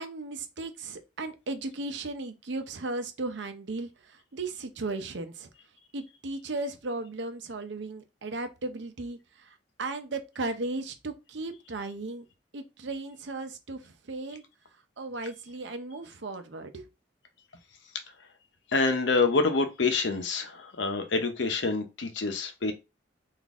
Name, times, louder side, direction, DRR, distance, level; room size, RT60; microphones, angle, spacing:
voice 1, 0.0-5.5 5.9-12.2 12.5-14.4 15.0-16.9, right 2 dB, 75° right, 0.7 m, -36 dB
voice 2, 18.7-22.7, left 3 dB, 75° left, 0.7 m, -27 dB
4.1 x 2.6 x 3.5 m
head